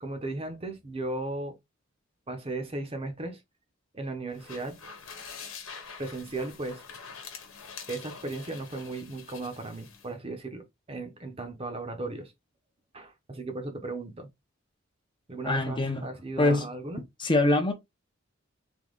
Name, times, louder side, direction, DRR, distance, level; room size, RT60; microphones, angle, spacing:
voice 1, 0.0-1.6 2.3-3.4 3.9-4.8 6.0-6.8 7.9-12.3 12.9-14.3 15.3-17.0, right 2 dB, 30° right, 0.8 m, -36 dB
sound 1, 4.3-10.1, left 6 dB, 75° left, 1.1 m, -45 dB
voice 2, 15.4-16.0 16.4-16.6 17.2-17.7, left 2 dB, 25° left, 0.7 m, -24 dB
3.5 x 2.8 x 3.8 m
head